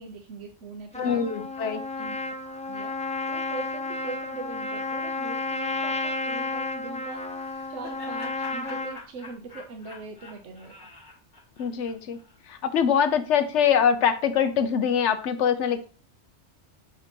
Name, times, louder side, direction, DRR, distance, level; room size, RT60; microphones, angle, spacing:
voice 1, 0.0-1.5 2.0-2.2 2.7-2.9 3.3-7.3 7.7-10.9, right 4 dB, 90° right, 4 dB, 1.1 m, -41 dB
Trumpet, 0.9-9.0, left 3 dB, 10° left, 0.4 m, -32 dB
voice 2, 1.0-1.8 11.6-12.2 12.5-15.9, left 8 dB, 75° left, 10 dB, 1.1 m, -23 dB
Laughter, 7.2-12.4, left 3 dB, 40° left, 1.9 m, -46 dB
7.1 x 2.8 x 5.2 m, 0.38 s
omnidirectional pair, 1.2 m